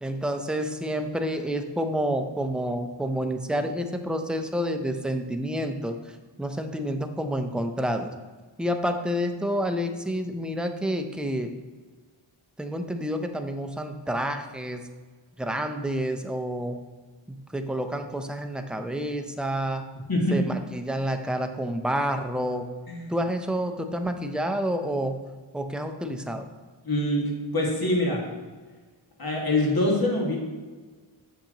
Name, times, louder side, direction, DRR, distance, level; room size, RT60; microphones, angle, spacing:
voice 1, 0.0-6.0 6.4-8.1 8.6-11.5 12.6-14.8 15.4-16.8 17.3-19.8 20.3-22.7 23.1-25.2 25.5-26.5, equal, ahead, 6 dB, 0.5 m, -29 dB
voice 2, 20.1-20.4 22.9-23.1 26.8-27.2 27.5-28.2 29.2-30.4, left 1 dB, 50° left, -2 dB, 1.9 m, -24 dB
7.4 x 6.6 x 2.9 m, 1.4 s
wide cardioid pair, 75°, 47 cm